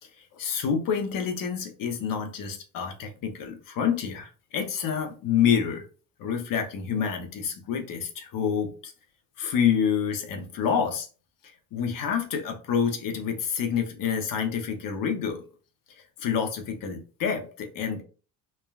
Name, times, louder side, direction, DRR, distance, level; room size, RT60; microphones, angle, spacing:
voice 1, 0.4-5.9 6.2-8.9 9.4-11.1 11.7-15.4 16.2-18.0, left 7 dB, 60° left, 4 dB, 0.7 m, -28 dB
3.2 x 2.2 x 2.3 m, 0.37 s
cardioid pair, 110°, 38 cm